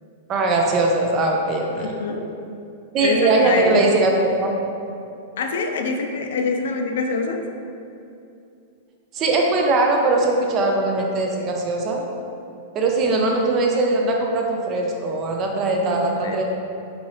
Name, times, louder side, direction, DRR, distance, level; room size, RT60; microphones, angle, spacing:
voice 1, 0.3-1.9 2.9-4.1 4.4-4.5 9.1-12.0 12.7-16.4, right 2 dB, 35° right, 1 dB, 0.4 m, -20 dB
voice 2, 1.8-2.3 3.0-3.8 5.4-7.4 15.8-16.4, left 4 dB, 75° left, 4 dB, 0.3 m, -25 dB
3.0 x 2.7 x 2.8 m, 2.7 s
hypercardioid pair, 135°, 0 cm